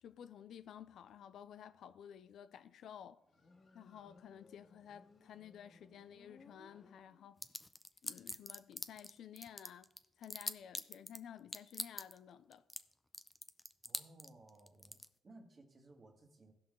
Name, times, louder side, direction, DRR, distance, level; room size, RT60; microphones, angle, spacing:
voice 1, 0.0-3.2 3.7-7.4 8.0-9.9 10.2-12.6, left 9 dB, 70° left, 0.5 m, -53 dB
Motorcycle, 3.2-7.6, left 3 dB, 45° left, 1.4 m, -64 dB
sound 1, 7.4-9.1 9.4-11.2 11.5-12.2 12.5-12.8 13.1-15.1, left 1 dB, 10° left, 0.5 m, -42 dB
voice 2, 13.8-16.5, right 2 dB, 35° right, 1.6 m, -60 dB
16.0 x 5.7 x 3.7 m
cardioid pair, 90°, 0 cm